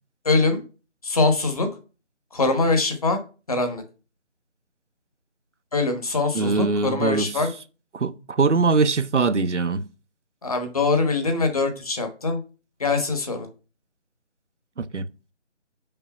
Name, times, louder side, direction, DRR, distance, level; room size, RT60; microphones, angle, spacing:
voice 1, 0.2-0.6 1.0-1.7 2.3-3.2 3.5-3.8 5.7-7.5 10.4-12.4 12.8-13.5, left 3 dB, 30° left, 1.2 m, -23 dB
voice 2, 6.3-7.3 7.9-9.9 14.8-15.1, right 4 dB, 80° right, 0.8 m, -22 dB
5.5 x 4.9 x 5.7 m
figure-of-eight pair, 160°, 35 cm